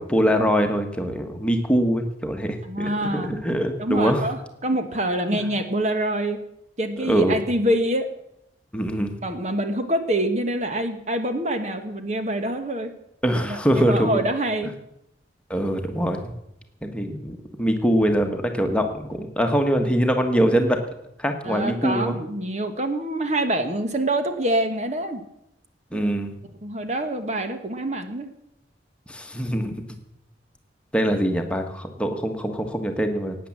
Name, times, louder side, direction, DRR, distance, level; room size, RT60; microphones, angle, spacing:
voice 1, 0.0-4.3 7.0-7.4 8.7-9.1 13.2-14.2 15.5-16.3 16.8-20.8 21.2-22.2 25.9-26.3 29.1-30.0 30.9-33.4, equal, 5° left, 4 dB, 1.5 m, -23 dB
voice 2, 2.6-3.4 3.8-6.4 6.8-8.1 9.2-12.9 13.3-14.7 21.4-25.2 25.9-26.1 26.6-28.3, right 1 dB, 40° right, 7 dB, 1.3 m, -26 dB
17.0 x 9.5 x 7.4 m, 0.81 s
head